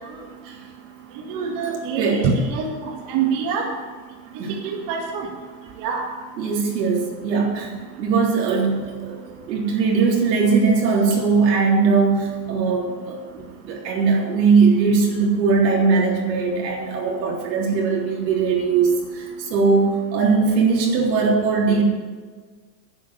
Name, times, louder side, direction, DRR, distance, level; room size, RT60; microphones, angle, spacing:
voice 1, 1.3-3.7 4.6-5.3 5.8-6.0, right 5 dB, 45° right, 0 dB, 2.1 m, -25 dB
voice 2, 2.0-2.3 4.4-4.6 6.4-7.7 8.0-9.2 9.5-21.8, right 4 dB, 85° right, -2 dB, 3.7 m, -20 dB
11.0 x 8.1 x 8.1 m, 1.5 s
supercardioid pair, 135°, 49 cm